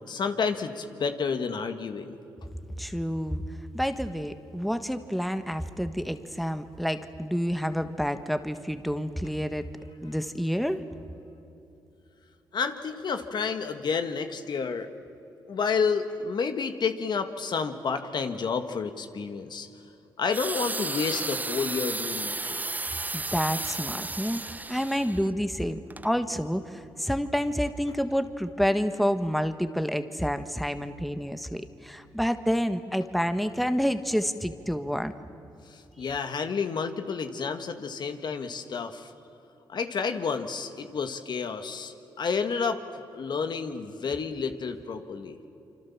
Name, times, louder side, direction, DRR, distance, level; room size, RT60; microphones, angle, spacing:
voice 1, 0.1-2.2 12.5-14.9 15.5-19.7 20.2-22.6 36.0-39.1 39.7-45.4, left 5 dB, 60° left, 8 dB, 1.8 m, -30 dB
voice 2, 2.8-3.4 3.7-9.7 10.0-10.8 23.1-35.1, equal, ahead, 9 dB, 1.5 m, -29 dB
sound 1, 20.3-25.3 25.9-26.1, right 3 dB, 20° right, 0.5 m, -33 dB
26.5 x 25.5 x 7.4 m, 2.9 s
supercardioid pair, 60°, 9 cm